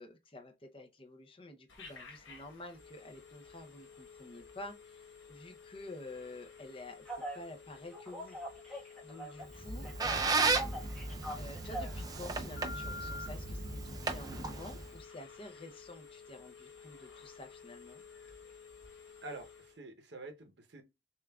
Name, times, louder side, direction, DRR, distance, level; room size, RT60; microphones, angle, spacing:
voice 1, 0.0-7.0 7.3-10.8 11.4-18.0, left 2 dB, 30° left, 0.6 m, -49 dB
Telephone, 1.7-19.8, left 6 dB, 85° left, 1.2 m, -54 dB
Telephone 2, 7.1-7.4 7.9-9.6 9.8-12.0 12.6-13.3, equal, ahead, 1.2 m, -43 dB
Squeak, 9.5-15.0, right 3 dB, 20° right, 0.3 m, -35 dB
voice 2, 19.2-20.8, right 2 dB, 65° right, 0.8 m, -47 dB
6.7 x 2.4 x 2.3 m
head